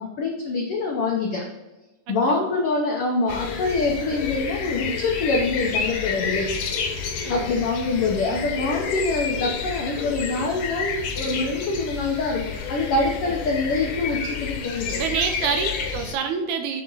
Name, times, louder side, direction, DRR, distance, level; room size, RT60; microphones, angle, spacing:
voice 1, 0.0-1.4 2.1-6.5 7.3-15.0, left 3 dB, 85° left, 0 dB, 1.2 m, -25 dB
sound 1, 3.3-16.1, left 6 dB, 65° left, 1.9 m, -30 dB
voice 2, 14.9-16.8, right 6 dB, 75° right, 6 dB, 2.0 m, -27 dB
9.0 x 4.2 x 3.9 m, 1.1 s
omnidirectional pair, 3.9 m